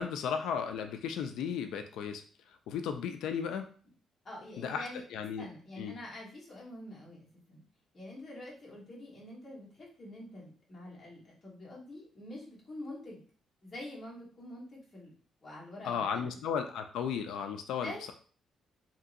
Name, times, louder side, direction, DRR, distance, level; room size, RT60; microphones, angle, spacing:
voice 1, 0.0-2.2 2.7-3.7 4.6-4.9 5.1-5.5 5.8-6.0 15.8-18.1, left 7 dB, 80° left, 6 dB, 0.3 m, -35 dB
voice 2, 4.2-5.0 5.4-7.6 7.9-13.2 13.6-15.1 15.4-16.3 17.8-18.0, left 1 dB, 25° left, -6 dB, 1.1 m, -46 dB
2.9 x 2.7 x 2.5 m, 0.42 s
cardioid pair, 180°, 0 cm